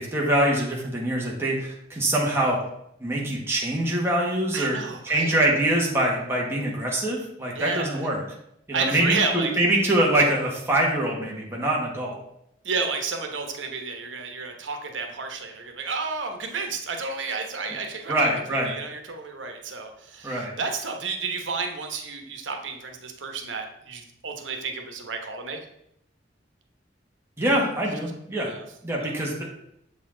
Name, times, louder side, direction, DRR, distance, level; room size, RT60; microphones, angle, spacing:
voice 1, 0.0-2.6 3.0-4.8 5.0-8.2 8.7-12.2 18.1-18.7 20.2-20.5 27.4-28.5 28.8-29.5, right 1 dB, 15° right, -3 dB, 1.2 m, -24 dB
voice 2, 4.5-5.4 7.5-8.0 8.7-9.5 12.6-25.6 28.4-28.6 29.0-29.2, right 4 dB, 85° right, 4 dB, 1.0 m, -31 dB
7.1 x 4.2 x 3.8 m, 0.75 s
head